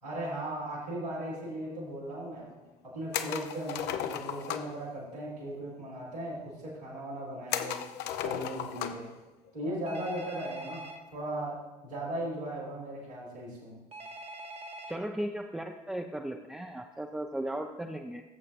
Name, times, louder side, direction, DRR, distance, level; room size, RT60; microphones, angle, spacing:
voice 1, 0.0-2.5 2.8-7.8 8.2-9.1 9.5-13.8, right 1 dB, 90° right, -11 dB, 3.3 m, -37 dB
sound 1, 3.1-4.8 7.5-9.1 9.5-9.6 11.2-11.5, left 10 dB, 55° left, 0.7 m, -35 dB
Telephone, 9.9-11.0 13.9-15.0, right 1 dB, 30° right, 1.1 m, -43 dB
voice 2, 14.9-18.2, right 1 dB, 5° right, 2 dB, 0.6 m, -36 dB
16.5 x 7.6 x 2.6 m, 1.1 s
figure-of-eight pair, 55°, 21 cm